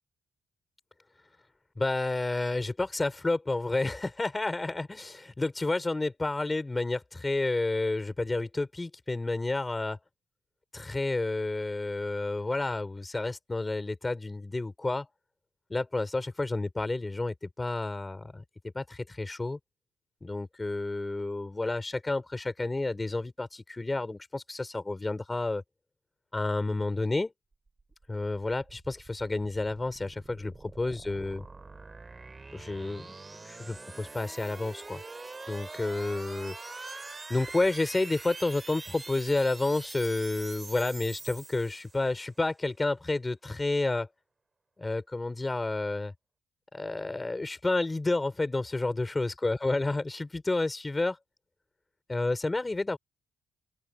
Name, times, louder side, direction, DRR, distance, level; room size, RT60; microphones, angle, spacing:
voice 1, 1.8-10.0 10.7-15.1 15.7-18.4 18.7-19.6 20.2-25.6 26.3-27.3 28.1-31.5 32.5-33.1 33.4-35.0 35.5-44.1 44.8-46.1 46.7-51.2 52.1-53.0, left 2 dB, 15° left, 4.0 m, -30 dB
sound 1, 27.7-42.2, right 3 dB, 20° right, 2.3 m, -45 dB
open air
cardioid pair, 155°, 0 cm